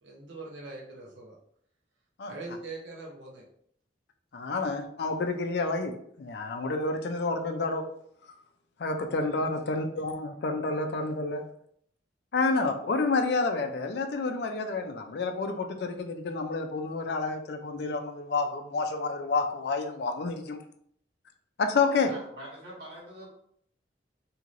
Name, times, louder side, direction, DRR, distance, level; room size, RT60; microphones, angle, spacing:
voice 1, 0.0-1.3 2.3-3.4, right 3 dB, 85° right, -2 dB, 0.8 m, -42 dB
voice 2, 4.3-7.9 8.8-11.4 12.3-20.6 21.6-22.1, left 3 dB, 60° left, 6 dB, 0.4 m, -29 dB
voice 3, 22.1-23.3, right 1 dB, 60° right, -5 dB, 1.5 m, -44 dB
3.1 x 2.8 x 2.5 m, 0.67 s
head